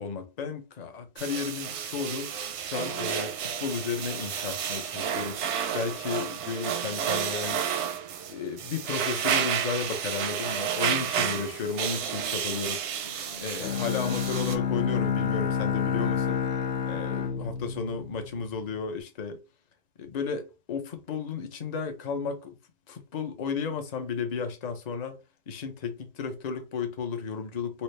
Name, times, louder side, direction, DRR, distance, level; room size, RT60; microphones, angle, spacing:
voice 1, 0.0-2.4 2.6-7.8 8.3-12.9 13.2-16.5 16.8-19.4 20.0-22.5 22.9-25.2 25.5-27.8, left 5 dB, 45° left, 0.7 m, -33 dB
sound 1, 1.2-14.6, right 8 dB, 85° right, 0.9 m, -31 dB
Bowed string instrument, 13.6-18.6, left 7 dB, 85° left, 0.9 m, -29 dB
4.1 x 2.0 x 3.2 m
omnidirectional pair, 1.1 m